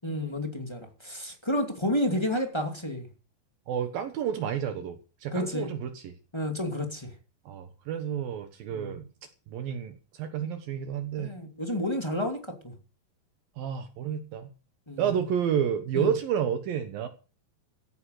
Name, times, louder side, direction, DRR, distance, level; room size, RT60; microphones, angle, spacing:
voice 1, 0.0-3.1 5.3-5.7 6.3-7.1 8.7-8.9 10.4-10.5 11.2-12.5 14.9-15.1 15.9-16.1, left 1 dB, 10° left, 1.4 m, -30 dB
voice 2, 3.7-6.1 7.5-9.1 9.5-11.3 13.6-14.5 15.0-17.1, right 8 dB, 65° right, 2.7 m, -30 dB
15.5 x 9.6 x 6.7 m
omnidirectional pair, 4.8 m